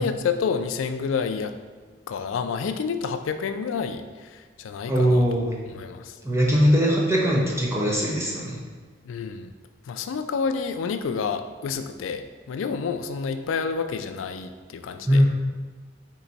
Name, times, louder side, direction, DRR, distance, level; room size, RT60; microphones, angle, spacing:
voice 1, 0.0-1.5 2.1-5.4 5.6-6.2 9.0-9.5 9.8-15.2, left 5 dB, 85° left, 9 dB, 0.3 m, -29 dB
voice 2, 4.9-5.5 6.2-8.6 15.1-15.3, equal, 15° right, -3 dB, 0.7 m, -20 dB
4.6 x 2.9 x 4.0 m, 1.5 s
head